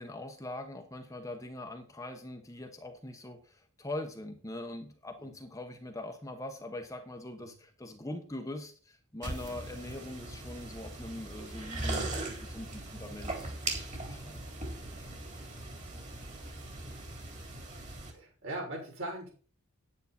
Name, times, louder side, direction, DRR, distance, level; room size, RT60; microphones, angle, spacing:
voice 1, 0.0-14.4, left 1 dB, 15° left, 4 dB, 1.2 m, -42 dB
sound 1, 9.2-18.1, right 2 dB, 35° right, 3.4 m, -39 dB
voice 2, 18.1-19.3, right 1 dB, 60° right, -3 dB, 6.4 m, -40 dB
9.8 x 9.7 x 4.4 m, 0.39 s
head